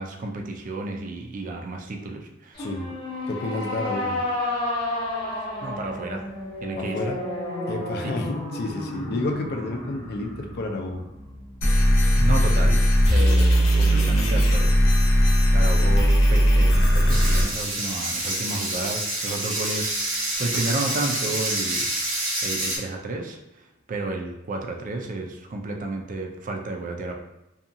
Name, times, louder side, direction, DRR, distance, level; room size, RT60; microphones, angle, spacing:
voice 1, 0.0-2.7 5.6-6.2 6.6-7.1 8.0-8.1 12.2-12.8 13.1-14.8 15.5-21.9 22.4-27.1, right 2 dB, 40° right, 2 dB, 0.4 m, -32 dB
sound 1, 2.5-11.9, left 1 dB, 25° left, 0.7 m, -32 dB
voice 2, 2.6-2.9 3.3-4.2 6.8-7.2 7.7-11.0, left 2 dB, 55° left, 3 dB, 0.4 m, -30 dB
sound 2, 11.6-17.4, equal, 80° left, 0.8 m, -18 dB
sound 3, 17.1-22.8, right 1 dB, 75° right, 1.0 m, -27 dB
2.7 x 2.3 x 2.6 m, 0.95 s
head